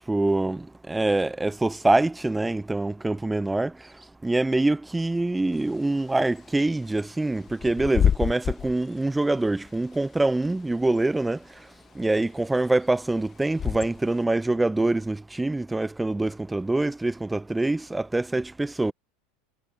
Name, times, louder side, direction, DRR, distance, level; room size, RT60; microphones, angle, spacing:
voice 1, 0.1-3.7 4.2-11.4 12.0-18.9, right 2 dB, 10° right, 1.1 m, -25 dB
Bird / Wind, 5.5-14.2, left 8 dB, 35° left, 1.8 m, -31 dB
hypercardioid pair, 85°, 0 cm